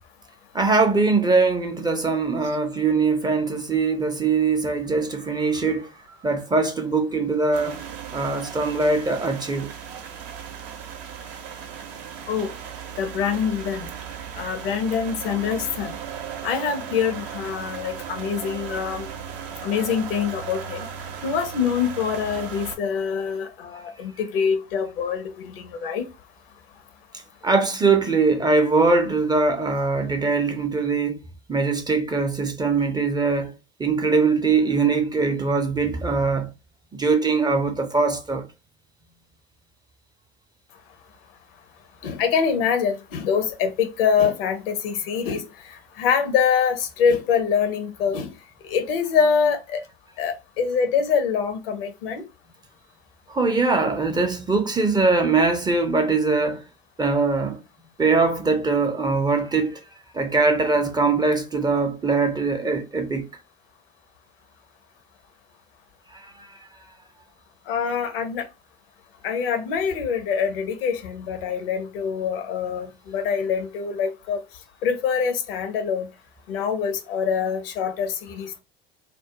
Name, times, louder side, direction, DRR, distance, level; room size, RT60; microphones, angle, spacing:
voice 1, 0.5-5.9 6.2-7.8 8.1-9.7 27.4-31.2 31.5-33.5 33.8-36.5 36.9-38.5 53.3-56.6 57.0-57.6 58.0-59.8 60.1-63.3 66.1-66.6, right 4 dB, 15° right, 0.4 m, -22 dB
sound 1, 7.5-22.8, right 8 dB, 65° right, 0.6 m, -36 dB
voice 2, 13.0-13.9 14.3-16.0 16.4-19.1 19.6-20.9 21.2-26.1 42.0-48.3 48.6-49.8 50.2-52.2 67.7-68.5 69.2-74.4 74.8-76.1 76.5-78.6, left 6 dB, 70° left, 0.6 m, -25 dB
2.3 x 2.1 x 2.8 m
hypercardioid pair, 70°, 29 cm